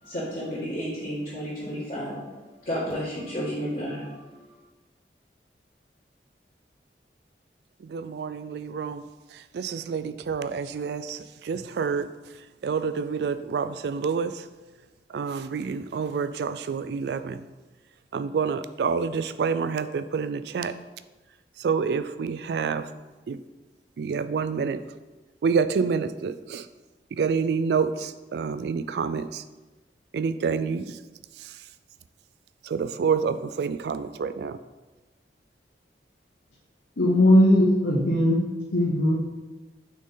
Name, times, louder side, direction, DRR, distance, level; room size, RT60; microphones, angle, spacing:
voice 1, 0.0-2.3 2.6-4.5, equal, 45° left, -12 dB, 2.0 m, -32 dB
voice 2, 7.8-9.1 9.3-12.1 12.6-14.5 15.1-17.4 18.1-20.8 21.6-22.9 23.3-23.4 24.0-24.8 25.4-26.7 27.1-29.4 30.1-31.0 31.4-31.6 32.6-34.6, right 5 dB, 70° right, 12 dB, 0.3 m, -28 dB
voice 3, 37.0-38.4 38.7-39.2, left 1 dB, 85° left, -5 dB, 1.0 m, -19 dB
6.0 x 4.2 x 3.8 m, 1.2 s
head